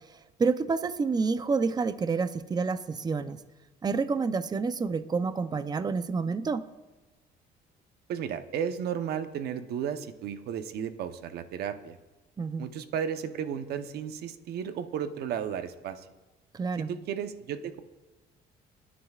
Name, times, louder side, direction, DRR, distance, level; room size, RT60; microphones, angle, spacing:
voice 1, 0.1-3.4 3.8-6.6 12.4-12.6 16.5-16.9, right 4 dB, 25° right, 12 dB, 0.6 m, -28 dB
voice 2, 8.1-12.0 12.6-16.1 16.9-17.8, right 8 dB, 70° right, 9 dB, 0.9 m, -34 dB
27.5 x 10.0 x 2.4 m, 1.2 s
cardioid pair, 110°, 17 cm